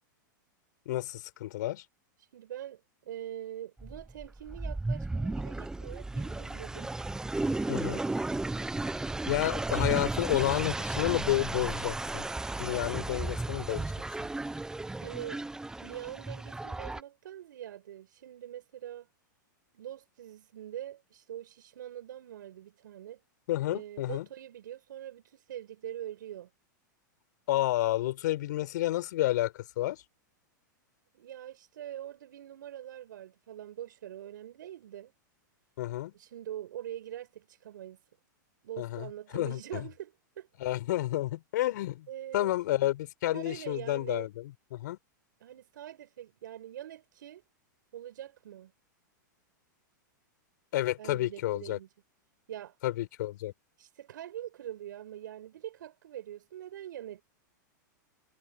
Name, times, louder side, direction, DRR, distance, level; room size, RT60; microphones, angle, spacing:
voice 1, 0.9-1.8 7.7-8.0 9.3-12.3 12.6-13.9 23.5-24.3 27.5-30.0 35.8-36.1 38.8-39.8 40.6-42.1 42.3-45.0 50.7-51.8 52.8-53.5, left 15 dB, 65° left, 5.7 m, -30 dB
voice 2, 2.2-6.9 15.0-15.4 15.8-19.1 19.7-23.2 23.7-26.5 31.1-35.1 36.1-38.0 38.6-40.5 42.1-42.6 43.3-44.3 45.4-47.4 47.9-48.7 51.0-51.9 52.5-52.8 53.8-57.2, right 11 dB, 75° right, 6.8 m, -43 dB
sound 1, 3.8-17.0, right 2 dB, 5° right, 0.9 m, -34 dB
hypercardioid pair, 120°, 10 cm